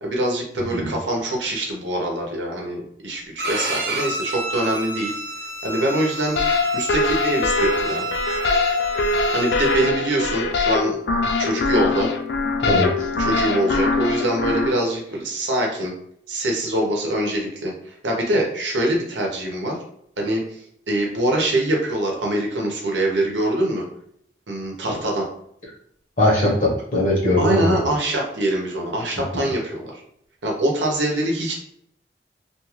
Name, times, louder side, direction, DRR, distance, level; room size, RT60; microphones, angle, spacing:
voice 1, 0.0-2.8 3.0-5.1 5.6-6.4 6.7-8.0 9.3-12.1 13.2-15.9 16.3-19.8 20.2-23.9 24.5-25.3 27.4-29.9 30.4-31.5, right 1 dB, 90° right, -1 dB, 0.8 m, -24 dB
Bowed string instrument, 3.4-9.9, right 2 dB, 55° right, 0.7 m, -30 dB
sound 1, 6.4-14.7, left 3 dB, 65° left, 0.3 m, -22 dB
voice 2, 12.6-13.1 26.2-27.8 29.3-29.4, left 1 dB, 45° left, -4 dB, 0.9 m, -20 dB
2.5 x 2.4 x 3.0 m, 0.70 s
head